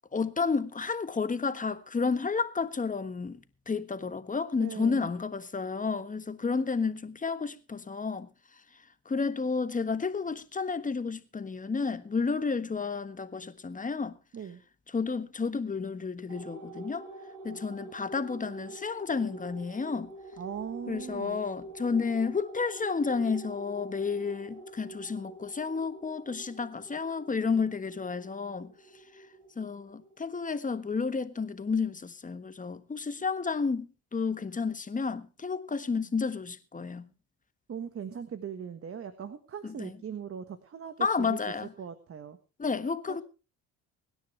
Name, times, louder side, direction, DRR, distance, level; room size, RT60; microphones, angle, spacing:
voice 1, 0.1-3.4 3.7-8.3 9.0-14.2 14.9-17.1 17.4-20.1 20.9-28.7 29.6-37.1 39.6-40.0 41.0-41.7 42.6-43.2, left 5 dB, 20° left, 1.4 m, -31 dB
voice 2, 4.6-5.1 14.3-14.6 20.4-21.4 37.7-41.4 41.8-42.4 43.1-43.2, right 7 dB, 40° right, 1.5 m, -39 dB
sound 1, 16.3-31.1, right 2 dB, 60° right, 6.8 m, -46 dB
24.5 x 10.0 x 3.3 m
cardioid pair, 90°, 35 cm